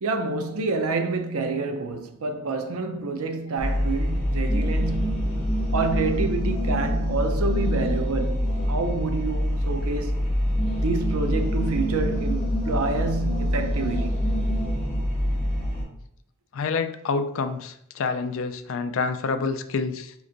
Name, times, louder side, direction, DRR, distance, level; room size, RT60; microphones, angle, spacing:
voice 1, 0.0-10.3 10.8-14.2, right 3 dB, 85° right, 0.6 m, -28 dB
sound 1, 3.6-15.8, equal, 10° left, 1.8 m, -25 dB
voice 2, 16.5-20.1, left 4 dB, 65° left, 0.4 m, -27 dB
4.3 x 3.0 x 3.8 m
head